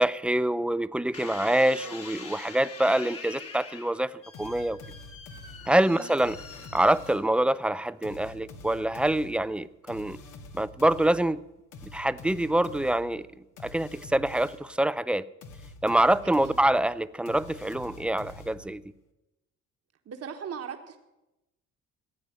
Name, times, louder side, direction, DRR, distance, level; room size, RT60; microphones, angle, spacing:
voice 1, 0.0-4.8 5.7-6.4 6.7-10.2 10.5-11.4 11.9-15.3 15.8-18.8, right 1 dB, 5° right, 16 dB, 0.4 m, -25 dB
sound 1, 1.1-7.5 8.2-8.6, left 5 dB, 50° left, 2.0 m, -44 dB
sound 2, 4.3-7.4 8.0-14.8 15.4-18.9, left 2 dB, 80° left, 1.7 m, -47 dB
voice 2, 16.2-16.6 20.0-21.0, right 7 dB, 55° right, 5 dB, 1.4 m, -39 dB
14.5 x 8.9 x 8.7 m, 0.97 s
cardioid pair, 90°, 30 cm